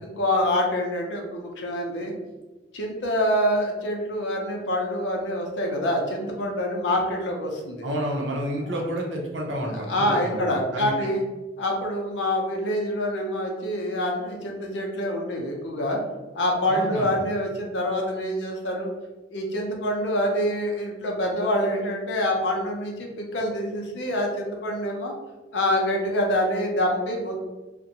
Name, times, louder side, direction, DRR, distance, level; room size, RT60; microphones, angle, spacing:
voice 1, 0.0-2.1 2.7-7.8 9.7-11.2 11.6-16.0 16.3-18.9 19.3-25.1 25.5-27.4, equal, 80° left, 0 dB, 0.6 m, -26 dB
voice 2, 7.8-10.4 10.7-11.1 16.7-17.2, equal, 85° right, -1 dB, 0.6 m, -30 dB
2.5 x 2.1 x 2.8 m, 1.2 s
head